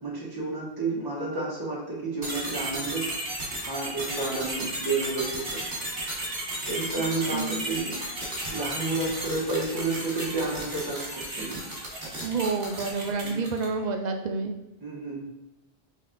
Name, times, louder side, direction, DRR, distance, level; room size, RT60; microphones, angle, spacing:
voice 1, 0.0-3.0 3.6-5.6 6.6-8.0 8.5-11.1 11.4-11.6 13.2-13.4 14.8-15.2, right 3 dB, 20° right, -4 dB, 1.1 m, -30 dB
sound 1, 2.2-13.8, right 1 dB, 70° right, 1.8 m, -34 dB
voice 2, 12.2-14.5, right 4 dB, 55° right, 4 dB, 0.5 m, -29 dB
4.1 x 3.3 x 3.8 m, 0.97 s
omnidirectional pair, 1.1 m